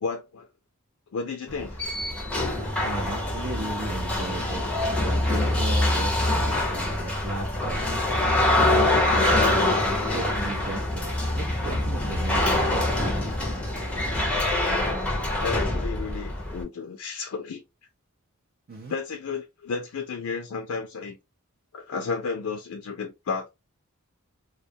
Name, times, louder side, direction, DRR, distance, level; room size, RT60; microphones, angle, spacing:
voice 1, 0.0-0.5 1.1-1.9 15.4-17.6 18.9-21.2 21.7-23.5, left 5 dB, 75° left, 0.4 m, -32 dB
sound 1, 1.5-16.6, left 1 dB, 5° left, 0.5 m, -25 dB
voice 2, 2.8-4.7 4.9-7.8 8.7-9.7 10.1-12.9 18.7-18.9, right 3 dB, 50° right, 0.5 m, -36 dB
2.2 x 2.1 x 2.6 m
head